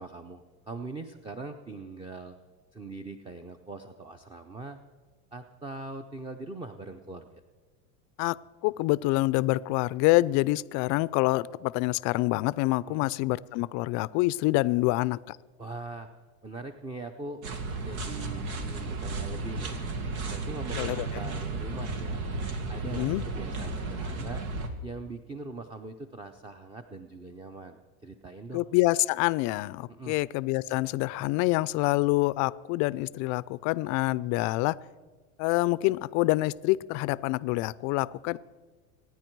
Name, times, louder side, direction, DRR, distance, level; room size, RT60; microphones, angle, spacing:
voice 1, 0.0-2.4 2.7-4.8 5.3-7.4 12.8-13.1 15.6-16.1 16.4-17.4 17.8-19.7 20.3-22.2 22.7-24.4 24.8-28.7 29.9-30.2, right 3 dB, 10° right, 8 dB, 0.6 m, -41 dB
voice 2, 8.6-15.4 20.8-21.1 22.9-23.2 28.5-34.8 35.4-38.4, left 20 dB, 45° left, 19 dB, 0.4 m, -26 dB
sound 1, 17.4-24.7, right 3 dB, 85° right, 2.1 m, -34 dB
26.0 x 9.8 x 4.6 m, 1.4 s
supercardioid pair, 125°, 42 cm